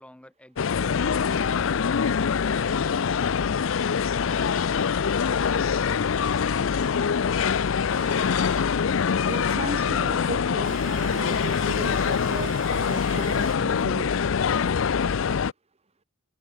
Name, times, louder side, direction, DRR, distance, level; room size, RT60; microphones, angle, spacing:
voice 1, 0.0-1.7, equal, 5° left, 5.7 m, -52 dB
sound 1, 0.6-15.5, left 6 dB, 70° left, 0.5 m, -24 dB
sound 2, 7.9-8.7 10.6-13.6, right 8 dB, 65° right, 4.2 m, -44 dB
voice 2, 9.2-14.2, right 2 dB, 30° right, 1.8 m, -36 dB
head